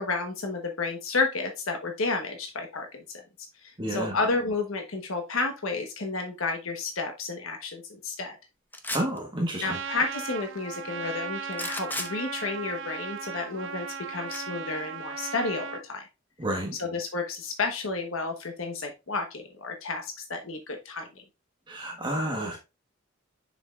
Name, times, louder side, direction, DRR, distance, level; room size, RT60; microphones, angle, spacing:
voice 1, 0.0-3.2 3.6-8.4 9.6-16.0 16.7-21.1, left 3 dB, 75° left, 1.1 m, -31 dB
voice 2, 3.8-4.1 8.9-9.7 16.4-16.8 21.7-22.6, right 1 dB, 20° right, 1.2 m, -30 dB
sound 1, 8.7-9.2 11.5-12.1 14.3-14.4, left 2 dB, 10° left, 0.7 m, -33 dB
Trumpet, 9.6-15.8, right 6 dB, 60° right, 0.7 m, -37 dB
7.1 x 6.0 x 2.4 m
head